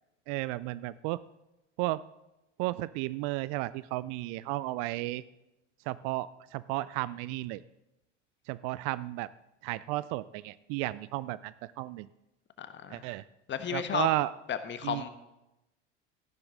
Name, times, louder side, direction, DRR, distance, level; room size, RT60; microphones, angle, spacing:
voice 1, 0.3-1.2 1.8-2.0 2.6-5.2 5.9-7.6 8.5-9.3 9.6-12.1 12.9-13.2 13.7-14.3 14.8-15.0, right 18 dB, 50° right, 18 dB, 0.4 m, -33 dB
voice 2, 12.6-13.0 13.5-14.1 14.5-15.1, left 9 dB, 30° left, 10 dB, 1.2 m, -33 dB
13.5 x 11.5 x 3.8 m, 0.92 s
hypercardioid pair, 80°, 36 cm